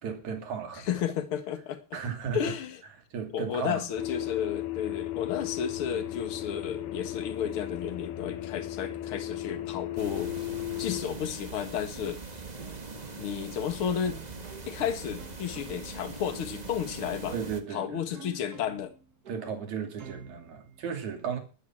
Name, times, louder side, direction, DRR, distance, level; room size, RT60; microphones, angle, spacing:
voice 1, 0.0-0.9 1.9-2.4 3.1-3.8 17.3-18.0 19.3-21.4, right 7 dB, 75° right, 4.0 m, -35 dB
voice 2, 0.9-2.0 2.3-2.8 3.3-10.5 10.8-12.2 13.2-14.2 14.6-17.4 17.7-18.9, left 8 dB, 50° left, 2.3 m, -32 dB
sound 1, 4.0-11.0, left 14 dB, 75° left, 2.2 m, -35 dB
sound 2, 5.2-20.9, right 5 dB, 40° right, 1.6 m, -52 dB
sound 3, 10.0-17.6, right 4 dB, 25° right, 1.0 m, -42 dB
12.0 x 10.0 x 7.4 m
omnidirectional pair, 3.4 m